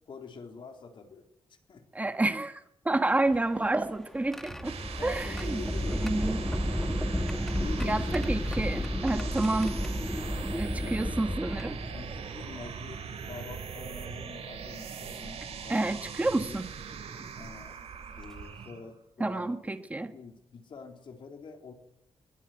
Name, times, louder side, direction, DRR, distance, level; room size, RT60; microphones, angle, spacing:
voice 1, 0.1-1.3 1.7-2.1 5.0-6.1 7.5-8.4 9.1-9.4 10.8-11.2 11.9-16.0 16.4-16.6 17.4-17.8 18.2-19.6 20.1-21.7, left 5 dB, 55° left, 4 dB, 3.9 m, -46 dB
voice 2, 1.9-4.7 5.0-5.6 5.9-6.4 7.8-9.8 10.5-11.8 15.7-16.7 19.2-20.1, right 2 dB, 15° right, 8 dB, 1.5 m, -29 dB
sound 1, 3.2-12.5 13.4-13.5 14.9-15.2 15.9-16.1 17.7-17.8 18.2-18.5, equal, 5° left, 1.7 m, -33 dB
sound 2, 4.4-18.9, right 6 dB, 85° right, 4.3 m, -41 dB
22.5 x 21.5 x 8.1 m, 0.78 s
wide cardioid pair, 160°, 10 cm